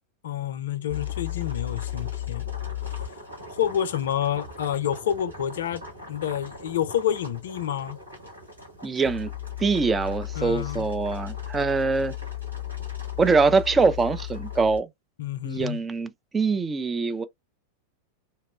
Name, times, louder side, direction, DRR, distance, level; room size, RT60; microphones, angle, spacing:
voice 1, 0.2-2.4 2.8-3.2 3.5-5.8 6.1-8.0 10.4-10.9 15.2-15.8, left 10 dB, 60° left, 0.4 m, -28 dB
sound 1, 0.9-14.8, left 10 dB, 80° right, 1.4 m, -36 dB
voice 2, 8.8-9.3 9.6-12.1 13.2-14.9 15.4-17.2, right 4 dB, 15° right, 0.4 m, -23 dB
2.8 x 2.0 x 2.3 m
figure-of-eight pair, 90°, 0 cm